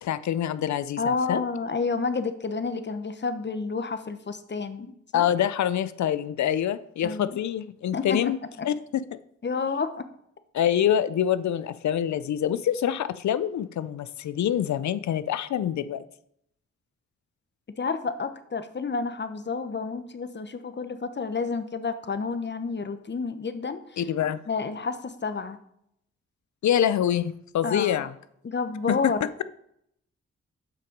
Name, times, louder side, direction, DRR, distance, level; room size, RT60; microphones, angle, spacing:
voice 1, 0.0-1.4 5.1-8.4 8.6-8.7 10.5-16.0 24.0-24.4 26.6-28.1 28.9-29.1, left 10 dB, 70° left, 15 dB, 0.6 m, -25 dB
voice 2, 1.0-5.2 7.0-7.4 7.9-8.3 8.6-8.7 9.4-10.1 17.8-24.0 24.5-25.6 27.6-28.0 28.4-29.3, left 4 dB, 40° left, 10 dB, 1.0 m, -30 dB
7.7 x 5.9 x 5.1 m, 0.73 s
supercardioid pair, 45°, 29 cm